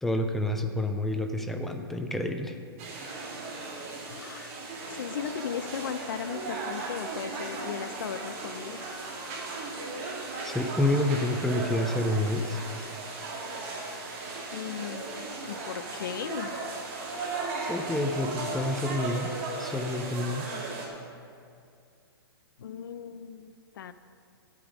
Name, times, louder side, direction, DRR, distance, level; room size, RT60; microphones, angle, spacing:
voice 1, 0.0-2.6 10.4-12.6 17.7-19.3 19.6-20.5, left 1 dB, ahead, 5 dB, 0.3 m, -28 dB
sound 1, 2.8-20.9, right 3 dB, 30° right, 1.9 m, -36 dB
voice 2, 4.1-4.5 4.9-8.8 14.5-16.5 22.6-23.9, left 8 dB, 55° left, 12 dB, 0.6 m, -37 dB
13.0 x 8.5 x 5.0 m, 2.4 s
hypercardioid pair, 165°, 13 cm